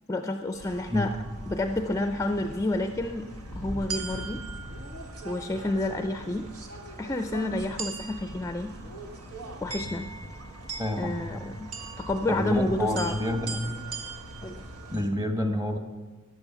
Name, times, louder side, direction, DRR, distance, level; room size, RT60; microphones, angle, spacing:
voice 1, 0.1-1.1 1.5-3.3 3.5-4.4 5.2-6.5 7.0-8.7 9.6-10.1 11.0-11.7 12.0-13.2 14.4-14.6, left 2 dB, 15° left, 7 dB, 0.4 m, -29 dB
sound 1, 0.5-15.0, right 2 dB, 80° right, 1.7 m, -39 dB
voice 2, 10.8-11.4 12.3-13.6 14.9-15.8, left 1 dB, 15° right, 5 dB, 1.2 m, -29 dB
14.0 x 9.9 x 5.6 m, 1.4 s
head